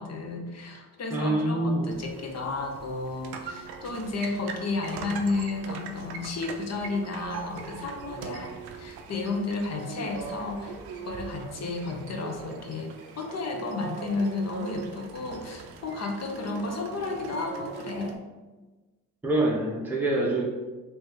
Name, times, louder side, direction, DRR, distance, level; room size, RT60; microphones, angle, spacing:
voice 1, 0.0-10.7 11.1-18.2, left 3 dB, 45° left, 3 dB, 0.7 m, -32 dB
voice 2, 1.1-1.9 19.2-20.4, right 1 dB, 5° right, -3 dB, 0.7 m, -25 dB
sound 1, 1.9-18.2, right 5 dB, 85° right, 0.5 m, -41 dB
3.0 x 2.7 x 3.4 m, 1.2 s
supercardioid pair, 60°, 38 cm